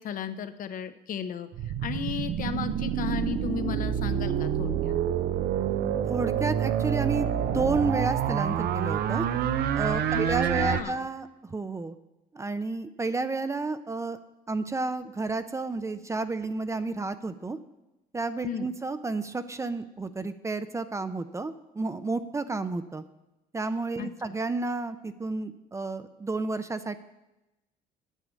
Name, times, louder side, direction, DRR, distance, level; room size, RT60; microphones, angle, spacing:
voice 1, 0.0-1.5 1.8-5.0 10.1-10.2 10.6-11.0 18.4-18.7 24.0-24.4, left 8 dB, 55° left, 10 dB, 0.7 m, -35 dB
sound 1, 1.5-10.8, right 9 dB, 70° right, 0.7 m, -27 dB
voice 2, 6.1-9.3 9.7-11.9 12.3-14.2 14.5-17.6 18.1-23.0 23.5-27.0, right 3 dB, 15° right, 11 dB, 0.5 m, -31 dB
9.0 x 7.9 x 6.3 m, 0.97 s
cardioid pair, 110°, 17 cm